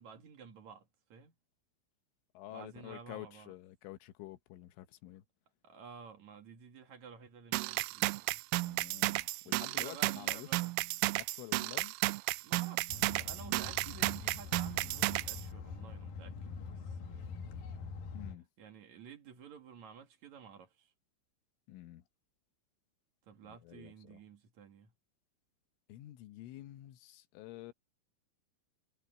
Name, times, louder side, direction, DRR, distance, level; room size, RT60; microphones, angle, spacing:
voice 1, 0.0-1.3 2.5-3.5 5.6-8.4 9.4-10.7 12.4-17.4 18.6-20.9 23.2-24.9, right 7 dB, 50° right, 2.5 m, -53 dB
voice 2, 2.3-5.2 8.6-10.5 11.2-11.9 18.1-18.5 21.7-22.0 23.5-24.2 25.9-27.7, left 15 dB, 80° left, 3.5 m, -49 dB
sound 1, 7.5-15.4, right 21 dB, 90° right, 3.2 m, -33 dB
sound 2, 12.9-18.4, left 5 dB, 60° left, 2.9 m, -44 dB
omnidirectional pair, 5.7 m